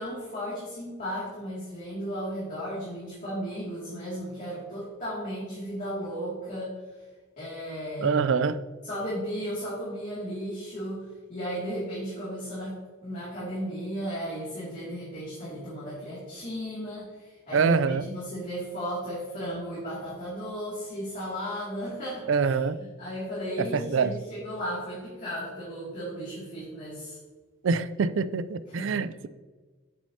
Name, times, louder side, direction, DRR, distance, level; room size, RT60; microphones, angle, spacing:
voice 1, 0.0-6.7 7.4-8.2 8.8-27.2 28.7-29.0, equal, 35° left, -9 dB, 2.4 m, -35 dB
voice 2, 8.0-8.6 17.5-18.0 22.3-22.8 23.7-24.2 27.6-29.3, right 5 dB, 60° right, 14 dB, 0.4 m, -25 dB
8.3 x 6.6 x 2.8 m, 1.3 s
head